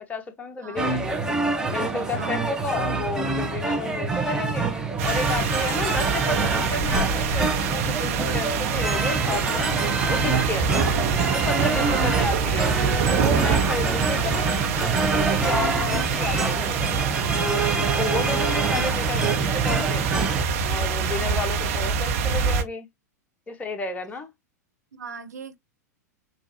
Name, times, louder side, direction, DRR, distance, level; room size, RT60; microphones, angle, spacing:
voice 1, 0.1-1.2 1.7-4.7 5.0-9.8 10.1-10.7 11.3-12.8 13.1-14.4 14.9-16.8 17.4-20.0 20.6-22.9 23.5-24.3, left 3 dB, 15° left, 1.1 m, -31 dB
sound 1, 0.8-20.4, right 3 dB, 5° right, 1.0 m, -26 dB
voice 2, 2.1-2.5 11.6-12.2 21.1-21.4 25.0-25.6, right 6 dB, 70° right, 0.9 m, -38 dB
sound 2, 5.0-22.6, right 6 dB, 50° right, 1.2 m, -26 dB
6.9 x 2.7 x 2.9 m
figure-of-eight pair, 95°, 9 cm